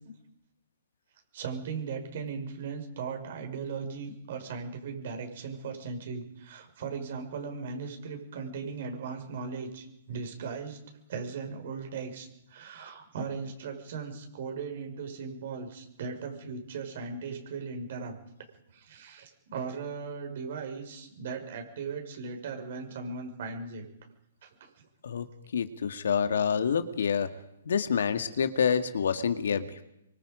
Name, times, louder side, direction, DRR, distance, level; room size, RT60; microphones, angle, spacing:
voice 1, 1.3-10.8 11.1-18.2 18.7-23.9 24.4-24.7, right 5 dB, 50° right, 4 dB, 5.7 m, -38 dB
voice 2, 25.5-27.3 27.7-29.8, left 7 dB, 75° left, 9 dB, 2.0 m, -27 dB
25.0 x 24.5 x 5.2 m, 0.81 s
hypercardioid pair, 165°, 0 cm